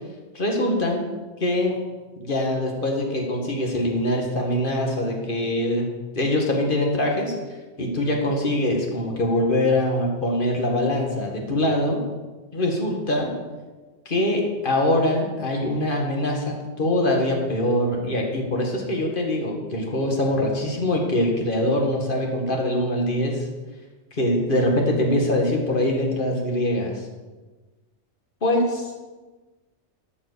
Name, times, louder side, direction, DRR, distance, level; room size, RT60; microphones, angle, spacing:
voice 1, 0.3-1.1 1.4-1.7 2.2-5.9 6.1-7.4 7.8-12.0 12.5-13.3 14.1-23.5 24.1-27.1 28.4-29.0, left 1 dB, 45° left, 1 dB, 1.9 m, -23 dB
12.0 x 5.0 x 6.7 m, 1.3 s
omnidirectional pair, 1.2 m